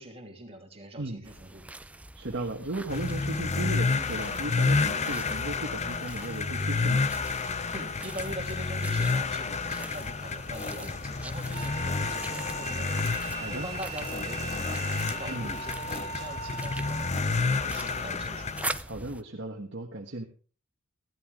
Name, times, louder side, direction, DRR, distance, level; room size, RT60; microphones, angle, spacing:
voice 1, 0.0-1.6 7.7-13.1 13.4-18.5, right 1 dB, 30° right, 2 dB, 3.0 m, -43 dB
voice 2, 1.0-1.3 2.1-7.1 13.4-13.7 15.3-15.5 18.8-20.2, right 2 dB, 55° right, 0 dB, 1.5 m, -36 dB
sound 1, 1.2-19.2, right 2 dB, 5° right, 0.5 m, -44 dB
sound 2, 2.9-18.8, left 4 dB, 30° left, 0.6 m, -30 dB
sound 3, 11.5-17.2, right 5 dB, 90° right, 0.9 m, -40 dB
15.0 x 12.5 x 3.7 m, 0.37 s
head